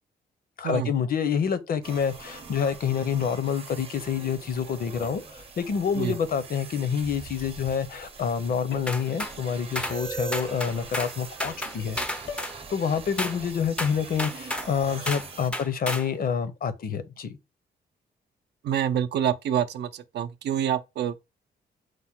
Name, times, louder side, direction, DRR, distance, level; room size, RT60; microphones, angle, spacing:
voice 1, 0.6-12.0 12.7-17.4, left 7 dB, 55° left, 0.6 m, -27 dB
sound 1, 1.8-15.5, right 4 dB, 30° right, 0.7 m, -41 dB
sound 2, 5.0-5.5 8.7-9.2 12.3-12.6, left 5 dB, 85° left, 0.9 m, -41 dB
sound 3, 8.9-9.4 9.8-10.0 10.3-11.1 11.4-12.6 13.2-13.4 13.8-14.7 15.1-15.3 15.5-16.1, left 1 dB, 5° left, 0.4 m, -31 dB
voice 2, 18.6-21.2, right 9 dB, 70° right, 0.5 m, -27 dB
4.7 x 2.1 x 4.2 m
wide cardioid pair, 145°, 18 cm